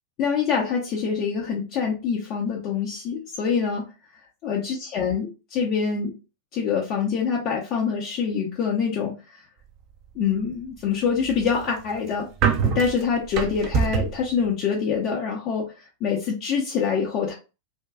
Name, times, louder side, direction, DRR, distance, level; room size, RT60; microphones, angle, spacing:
voice 1, 0.2-3.9 4.4-6.1 6.5-9.4 10.2-12.3 12.6-17.3, left 6 dB, 40° left, -1 dB, 0.5 m, -25 dB
sound 1, 11.1-14.3, right 6 dB, 40° right, 0.4 m, -25 dB
2.5 x 2.2 x 2.2 m, 0.30 s
figure-of-eight pair, 90°, 0 cm